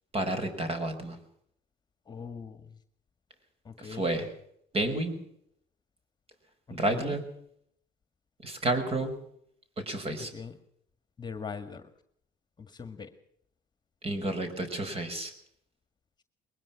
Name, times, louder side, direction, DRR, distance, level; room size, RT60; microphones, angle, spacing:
voice 1, 0.1-1.2 3.8-4.3 4.7-5.2 6.7-7.2 8.4-9.1 9.8-10.3 14.0-15.3, right 2 dB, 35° right, 9 dB, 5.7 m, -30 dB
voice 2, 2.1-2.8 3.7-4.1 6.8-7.2 10.2-10.5 11.2-11.9 12.6-13.1, left 5 dB, 25° left, 9 dB, 2.0 m, -41 dB
22.0 x 20.0 x 6.1 m, 0.71 s
cardioid pair, 110°, 17 cm